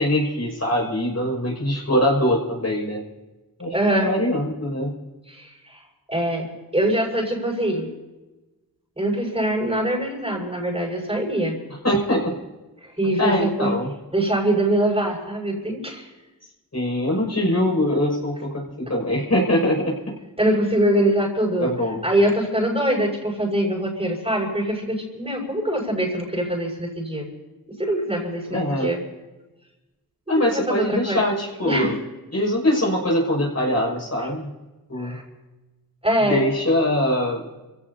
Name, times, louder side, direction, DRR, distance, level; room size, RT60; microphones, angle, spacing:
voice 1, 0.0-3.0 3.6-4.9 11.8-12.3 13.2-13.9 16.7-20.1 21.6-22.0 28.5-28.9 30.3-32.0 32.3-34.5 34.9-35.2 36.2-37.5, left 1 dB, 45° left, -1 dB, 6.4 m, -22 dB
voice 2, 3.7-4.1 5.3-5.8 6.1-6.5 6.7-7.9 9.0-11.6 12.8-13.7 14.1-16.1 20.4-21.7 22.0-27.3 27.8-29.0 30.3-31.2 31.6-31.9 35.0-35.2 36.0-36.4, right 1 dB, 15° right, -1 dB, 6.0 m, -23 dB
29.5 x 16.5 x 2.8 m, 1.1 s
cardioid pair, 50°, 37 cm